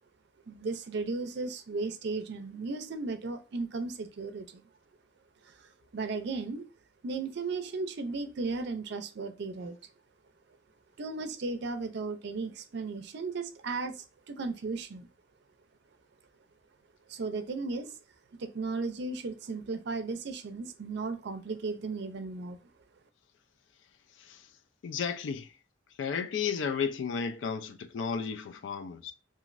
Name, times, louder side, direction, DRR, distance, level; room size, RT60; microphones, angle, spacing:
voice 1, 0.5-4.6 5.6-6.6 7.0-9.8 11.0-15.1 17.1-18.0 18.4-22.6, right 3 dB, 60° right, 0.4 m, -35 dB
voice 2, 24.8-25.5 26.0-29.1, left 6 dB, 70° left, 0.3 m, -33 dB
3.0 x 2.4 x 2.4 m
head